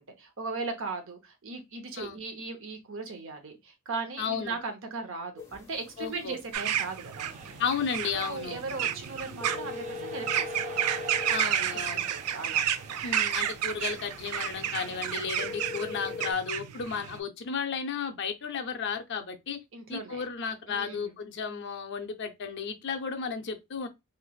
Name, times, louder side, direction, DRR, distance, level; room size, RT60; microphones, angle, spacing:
voice 1, 0.0-7.6 8.1-10.9 11.7-12.8 19.7-20.3 20.7-21.2, right 3 dB, 60° right, 0.8 m, -38 dB
voice 2, 4.2-4.5 6.0-6.4 7.6-8.6 11.3-12.1 13.0-19.6 19.9-23.9, left 6 dB, 50° left, 0.5 m, -33 dB
sound 1, 5.4-16.3, left 4 dB, 10° left, 0.7 m, -43 dB
sound 2, 6.5-17.2, right 10 dB, 85° right, 0.4 m, -31 dB
sound 3, 7.1-15.9, right 4 dB, 35° right, 0.5 m, -46 dB
3.2 x 2.9 x 2.3 m
head